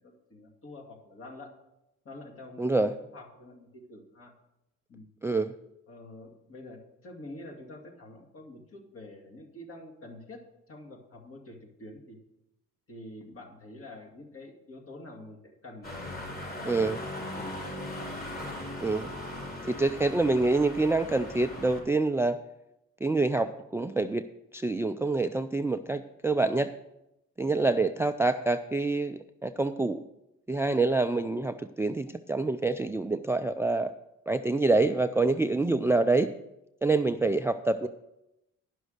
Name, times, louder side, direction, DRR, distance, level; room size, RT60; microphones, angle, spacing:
voice 1, 0.0-1.5 2.0-4.3 4.9-5.1 5.9-12.2 12.9-16.1 16.5-18.1, left 2 dB, 45° left, 2 dB, 2.4 m, -47 dB
voice 2, 2.6-2.9 5.2-5.5 16.7-17.0 18.8-19.1 19.7-22.4 23.0-24.2 24.5-26.7 27.4-30.0 30.5-33.9 34.3-36.3 36.8-37.9, right 3 dB, 10° right, 11 dB, 0.3 m, -26 dB
sound 1, 15.8-21.8, left 1 dB, 30° left, 4.2 m, -39 dB
10.5 x 6.2 x 6.5 m, 0.89 s
cardioid pair, 90°, 30 cm